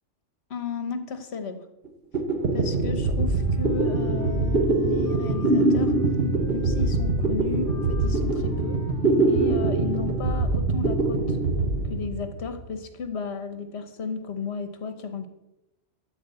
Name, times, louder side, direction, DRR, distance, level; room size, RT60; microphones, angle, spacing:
voice 1, 0.5-1.6 2.5-5.9 6.5-8.8 9.3-11.4 11.8-15.3, left 5 dB, 65° left, 9 dB, 1.4 m, -34 dB
sound 1, 1.8-1.9 2.1-12.6, right 2 dB, 55° right, 1.6 m, -23 dB
Wind instrument woodwind instrument, 3.3-10.6, equal, 30° right, 3.7 m, -46 dB
13.0 x 4.9 x 8.0 m, 0.92 s
omnidirectional pair, 1.2 m